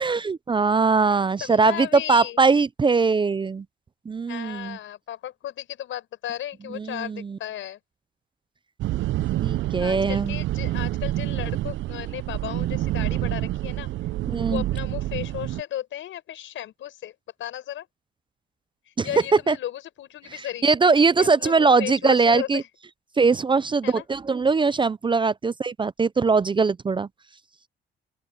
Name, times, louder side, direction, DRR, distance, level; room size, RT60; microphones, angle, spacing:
voice 1, 0.0-3.6 4.1-4.8 6.8-7.4 9.4-10.4 14.3-14.6 19.0-19.1 19.5-19.6 20.6-22.6 23.2-27.1, right 4 dB, 25° right, 0.5 m, -21 dB
voice 2, 1.4-2.4 4.3-7.8 9.8-13.9 14.5-17.9 18.9-20.7 21.2-22.7 23.8-24.0, left 12 dB, 75° left, 6.7 m, -35 dB
sound 1, 8.8-15.6, right 15 dB, 75° right, 0.5 m, -27 dB
open air
cardioid pair, 90°, 20 cm